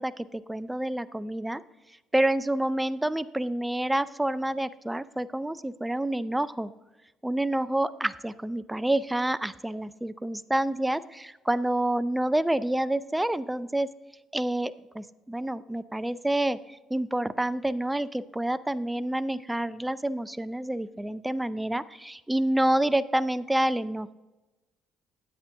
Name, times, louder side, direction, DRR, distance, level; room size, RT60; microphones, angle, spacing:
voice 1, 0.0-1.6 2.1-6.7 7.2-13.9 14.3-24.1, right 1 dB, 5° right, 14 dB, 0.4 m, -28 dB
9.8 x 8.6 x 3.4 m, 1.1 s
cardioid pair, 100°, 0 cm